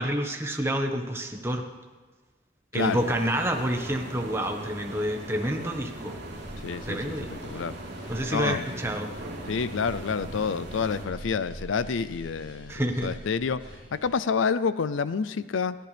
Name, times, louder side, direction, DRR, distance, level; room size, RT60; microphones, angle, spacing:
voice 1, 0.0-1.6 2.7-6.2 6.9-7.5 8.1-9.1 12.7-13.1, equal, 15° right, 3 dB, 1.3 m, -28 dB
sound 1, 2.7-11.1, right 1 dB, 60° right, 3.7 m, -40 dB
sound 2, 6.3-14.1, right 1 dB, 30° right, 5.3 m, -45 dB
voice 2, 6.6-7.8 8.3-8.7 9.5-13.6 13.9-15.8, left 5 dB, 75° left, 14 dB, 0.5 m, -28 dB
28.0 x 10.5 x 3.4 m, 1.3 s
head